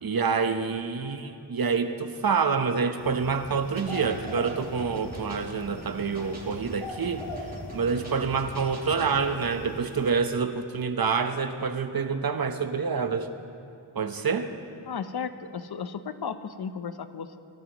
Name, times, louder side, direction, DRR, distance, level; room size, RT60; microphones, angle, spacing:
voice 1, 0.0-7.3 7.7-13.3 13.9-14.5, right 5 dB, 50° right, 8 dB, 1.2 m, -27 dB
sound 1, 3.0-10.1, left 2 dB, 80° left, 2.1 m, -42 dB
sound 2, 3.8-9.2, right 1 dB, 20° right, 3.9 m, -42 dB
voice 2, 14.9-17.4, left 6 dB, 50° left, 11 dB, 0.9 m, -34 dB
24.5 x 12.0 x 3.1 m, 2.6 s
cardioid pair, 45°, 47 cm